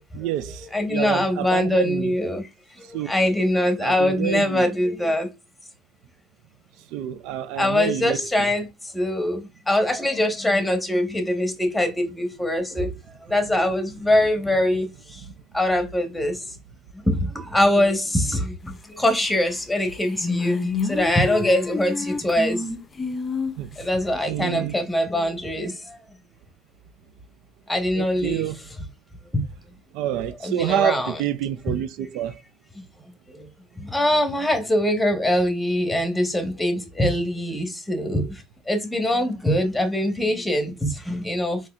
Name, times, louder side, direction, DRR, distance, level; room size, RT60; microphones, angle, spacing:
voice 1, 0.1-2.2 2.9-3.1 3.8-4.7 6.9-8.5 12.5-12.6 15.2-15.3 23.6-23.7 24.3-24.8 28.0-28.6 29.9-32.4, right 11 dB, 75° right, 0.4 m, -28 dB
voice 2, 0.7-2.5 2.8-5.3 7.6-8.7 8.9-12.9 13.3-15.2 15.5-16.4 17.0-22.7 23.8-26.0 27.7-28.4 29.3-29.4 30.4-31.2 33.3-33.5 33.8-41.6, left 1 dB, 5° left, 1.2 m, -23 dB
sound 1, 19.5-19.6 19.8-23.8, left 4 dB, 25° left, 0.6 m, -28 dB
4.2 x 3.1 x 2.4 m
supercardioid pair, 100°, 0 cm